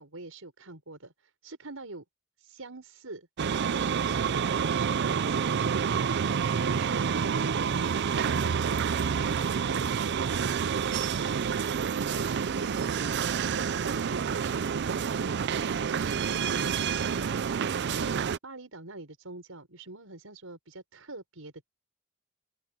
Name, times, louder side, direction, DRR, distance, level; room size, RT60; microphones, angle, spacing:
voice 1, 0.0-2.0 2.4-3.3 3.7-12.9 13.3-15.3 15.7-21.7, right 2 dB, 85° right, 5.5 m, -44 dB
sound 1, 3.4-18.4, right 6 dB, 55° right, 0.5 m, -28 dB
open air
head